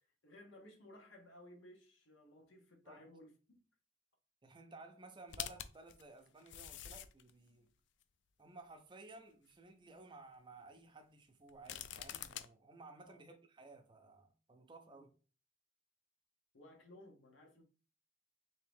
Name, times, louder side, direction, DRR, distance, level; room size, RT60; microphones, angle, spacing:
voice 1, 0.2-3.6 13.0-13.2 14.9-15.1 16.5-17.6, left 1 dB, 85° left, 1.0 m, -58 dB
voice 2, 4.4-7.7 8.4-15.1, right 2 dB, 25° right, 0.5 m, -56 dB
sound 1, 5.3-7.3 8.0-8.1 11.5-12.5, left 10 dB, 65° left, 0.3 m, -45 dB
3.5 x 2.8 x 3.4 m
head